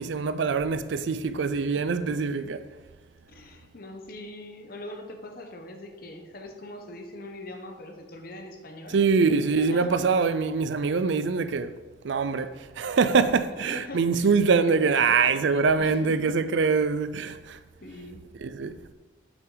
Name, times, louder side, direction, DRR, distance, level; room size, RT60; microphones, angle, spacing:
voice 1, 0.0-2.7 8.9-11.7 12.0-17.6 18.4-18.9, right 5 dB, 70° right, 0.4 m, -24 dB
voice 2, 1.6-2.0 3.3-10.1 13.2-14.3 14.7-16.5 17.8-18.3, left 1 dB, 50° left, 1.0 m, -42 dB
7.6 x 5.9 x 3.9 m
head